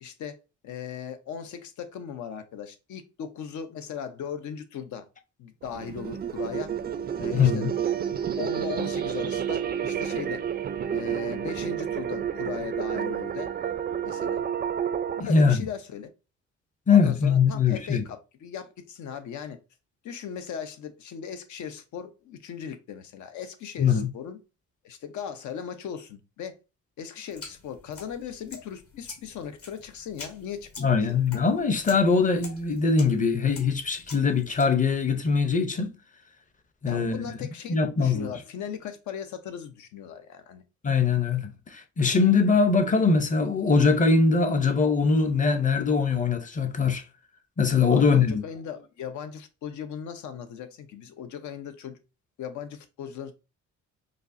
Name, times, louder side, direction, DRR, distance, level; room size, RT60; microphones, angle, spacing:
voice 1, 0.0-0.4 0.6-5.1 5.4-6.7 7.2-7.7 8.4-10.4 10.9-13.5 14.0-14.4 15.1-16.1 16.9-19.6 20.0-24.4 24.8-26.5 27.0-31.1 36.9-40.6 47.9-52.0 52.4-53.3, left 8 dB, 70° left, 0.7 m, -38 dB
sound 1, 5.6-15.2, right 9 dB, 30° right, 0.4 m, -30 dB
voice 2, 7.3-7.7 15.2-15.7 16.9-18.0 23.8-24.1 30.8-36.0 36.8-37.3 37.7-38.3 40.8-47.0 47.6-48.4, left 5 dB, 25° left, 0.6 m, -22 dB
sound 2, 27.3-34.6, left 4 dB, 50° left, 1.3 m, -46 dB
5.0 x 2.1 x 2.6 m
cardioid pair, 90°, 30 cm